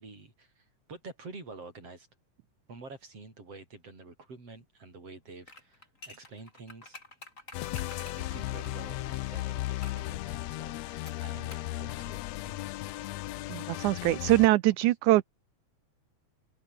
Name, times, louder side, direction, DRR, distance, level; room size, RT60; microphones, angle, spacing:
voice 1, 0.0-2.1 2.7-7.0 7.7-12.7 14.8-14.9, right 3 dB, 45° right, 7.4 m, -48 dB
sound 1, 5.4-9.2 9.8-10.1 11.1-11.7 12.0-12.1, left 2 dB, 20° left, 6.1 m, -49 dB
sound 2, 7.5-14.5, left 17 dB, 75° left, 1.6 m, -36 dB
voice 2, 13.5-15.2, right 17 dB, 75° right, 2.1 m, -23 dB
omnidirectional pair, 3.7 m